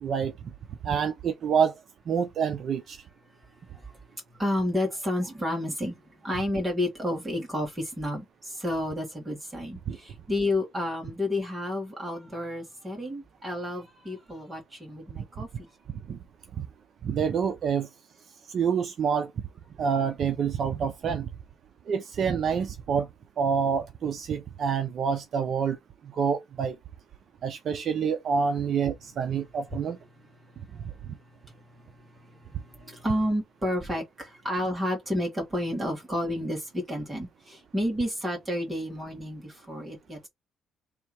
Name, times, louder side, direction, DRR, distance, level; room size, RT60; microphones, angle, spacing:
voice 1, 0.0-0.3 0.8-1.7 2.1-3.0 9.9-10.0 15.2-15.3 16.1-16.2 16.6-16.7 17.0-17.9 18.5-19.3 19.8-21.3 21.9-23.1 23.4-25.8 26.1-26.8 27.4-30.0, right 6 dB, 50° right, 0.5 m, -27 dB
voice 2, 4.3-15.7 30.7-30.9 32.3-40.3, left 1 dB, 15° right, 1.7 m, -31 dB
3.4 x 2.7 x 4.6 m
cardioid pair, 155°, 0 cm